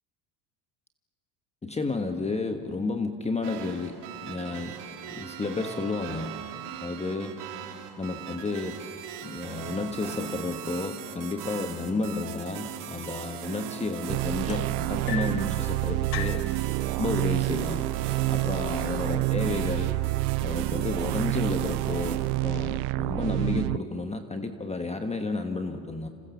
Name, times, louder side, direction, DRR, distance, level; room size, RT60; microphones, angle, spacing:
voice 1, 1.6-4.0 4.2-4.8 5.1-6.3 6.8-7.4 8.0-8.8 9.2-16.5 17.0-17.9 18.3-20.0 20.4-26.1, left 3 dB, 15° left, 6 dB, 1.3 m, -31 dB
sound 1, 3.4-22.2, right 9 dB, 60° right, 3.1 m, -39 dB
sound 2, 14.1-23.8, right 21 dB, 75° right, 0.6 m, -28 dB
sound 3, 14.5-15.5 16.1-16.5 17.5-17.6 18.1-18.4 19.1-19.2, left 10 dB, 70° left, 1.8 m, -36 dB
29.0 x 27.5 x 7.1 m, 2.3 s
supercardioid pair, 120°, 48 cm